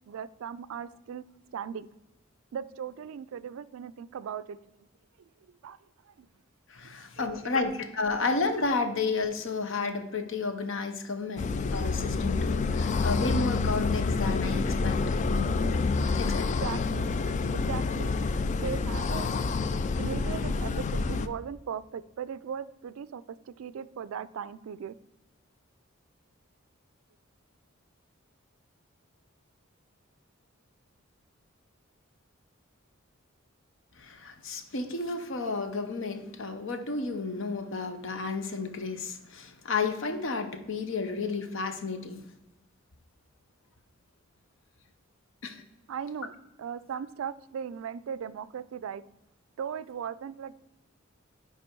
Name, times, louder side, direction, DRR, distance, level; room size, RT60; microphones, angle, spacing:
voice 1, 0.1-1.2 1.5-1.9 2.5-4.6 5.6-5.8 6.1-6.3 6.8-6.9 7.2-7.3 16.4-17.2 17.5-18.1 18.6-19.4 20.0-24.9 45.9-49.0 49.6-50.5, right 7 dB, 75° right, 16 dB, 0.3 m, -38 dB
voice 2, 6.7-15.0 16.1-16.6 34.0-42.2 45.4-45.6, left 3 dB, 65° left, 8 dB, 0.8 m, -32 dB
sound 1, 11.4-21.3, left 4 dB, 35° left, 0.3 m, -28 dB
9.7 x 3.4 x 4.5 m, 0.95 s
head